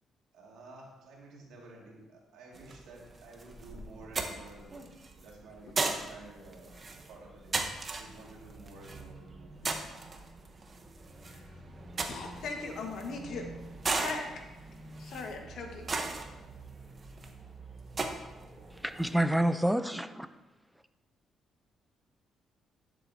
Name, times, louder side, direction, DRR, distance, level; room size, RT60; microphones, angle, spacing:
voice 1, 0.3-6.8 7.1-7.6 8.0-9.7, right 2 dB, 85° right, -2 dB, 2.1 m, -52 dB
sound 1, 2.5-19.2, right 3 dB, 35° right, 0.9 m, -39 dB
voice 2, 12.1-13.5 14.0-14.3 15.0-16.2, left 4 dB, 70° left, 3 dB, 1.4 m, -39 dB
voice 3, 18.7-20.3, right 1 dB, 5° right, 11 dB, 0.5 m, -28 dB
11.5 x 7.3 x 2.7 m, 1.1 s
cardioid pair, 90°, 0 cm